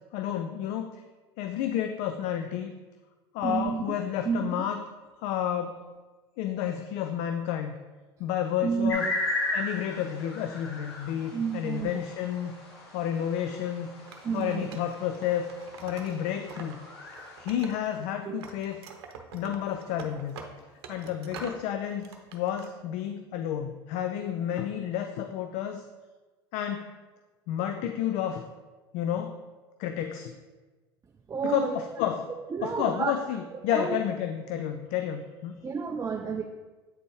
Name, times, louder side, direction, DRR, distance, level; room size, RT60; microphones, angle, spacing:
voice 1, 0.1-1.0 1.4-2.7 3.3-4.8 5.2-5.8 6.4-7.7 8.2-9.1 9.5-12.5 12.9-13.9 14.3-15.5 15.8-16.8 17.4-18.8 19.3-20.4 20.9-25.9 26.5-26.9 27.5-28.4 28.9-29.4 29.8-30.4 31.4-32.3 32.6-35.6, left 10 dB, 60° left, 7 dB, 0.4 m, -31 dB
voice 2, 3.4-3.8 4.2-4.7 8.6-9.1 11.3-12.0 14.2-14.6 18.3-18.4 31.3-31.8 32.5-33.1 33.7-34.0 35.6-36.4, right 6 dB, 25° right, 4 dB, 0.5 m, -30 dB
sound 1, 8.9-17.4, left 2 dB, 85° left, 1.3 m, -36 dB
Wood, 14.1-16.8 17.1-18.1 18.4-21.6 22.0-22.7, right 5 dB, 75° right, 0.7 m, -45 dB
8.2 x 4.2 x 3.2 m, 1.3 s
hypercardioid pair, 80°, 13 cm